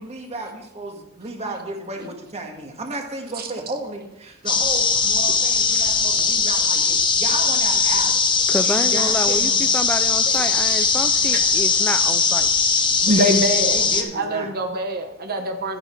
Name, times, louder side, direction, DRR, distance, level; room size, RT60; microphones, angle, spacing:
voice 1, 0.0-8.2 8.6-9.6 13.0-14.5, right 2 dB, 30° right, 2 dB, 1.8 m, -33 dB
sound 1, 4.5-14.0, left 5 dB, 25° left, 1.1 m, -19 dB
voice 2, 8.5-12.5, left 1 dB, 5° left, 8 dB, 0.3 m, -28 dB
voice 3, 13.1-15.8, equal, 45° right, 5 dB, 1.0 m, -24 dB
11.5 x 9.6 x 4.5 m, 0.91 s
head